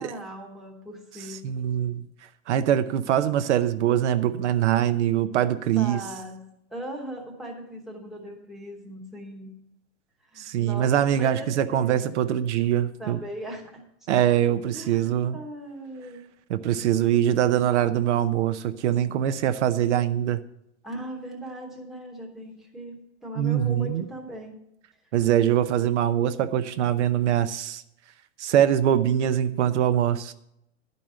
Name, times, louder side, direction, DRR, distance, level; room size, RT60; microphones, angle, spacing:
voice 1, 0.0-1.5 5.8-9.6 10.3-12.0 13.0-13.8 14.7-16.3 20.8-24.5, right 1 dB, ahead, -2 dB, 1.0 m, -39 dB
voice 2, 1.3-2.1 2.5-6.0 10.4-13.2 14.1-15.4 16.5-20.4 23.4-24.1 25.1-27.8 28.4-30.3, right 10 dB, 75° right, 11 dB, 0.8 m, -23 dB
11.0 x 5.3 x 7.5 m, 0.79 s
supercardioid pair, 170°, 36 cm